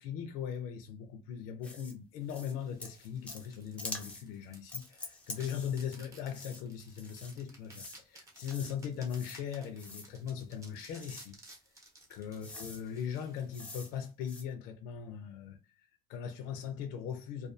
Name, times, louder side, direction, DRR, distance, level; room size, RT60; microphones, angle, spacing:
voice 1, 0.0-11.4 12.1-17.5, left 8 dB, 75° left, 0.5 m, -39 dB
sound 1, 1.6-1.9 2.3-2.5 2.8-3.5 3.8-4.2 4.7-6.0 6.3-6.6 7.0-7.3 7.7-8.0 8.3-8.7 9.1-9.4 9.8-10.1 11.0-11.3 12.0-12.1 12.4-12.8 13.5-13.9 14.2-14.4, left 2 dB, 10° left, 0.4 m, -45 dB
sound 2, 2.2-14.1, right 2 dB, 20° right, 0.8 m, -58 dB
2.3 x 2.3 x 2.5 m
cardioid pair, 160°, 15 cm